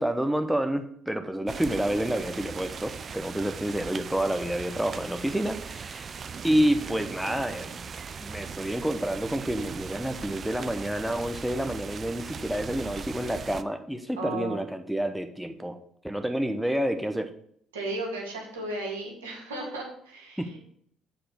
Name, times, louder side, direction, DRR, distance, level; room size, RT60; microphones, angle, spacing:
voice 1, 0.0-7.9 8.2-15.8 16.0-17.3 20.4-20.5, right 1 dB, 5° right, 6 dB, 1.0 m, -29 dB
sound 1, 1.5-13.6, right 6 dB, 40° right, 0.5 m, -39 dB
voice 2, 14.2-14.6 17.7-20.6, right 2 dB, 80° right, 0 dB, 2.0 m, -35 dB
7.9 x 4.3 x 6.9 m, 0.65 s
figure-of-eight pair, 50°, 0 cm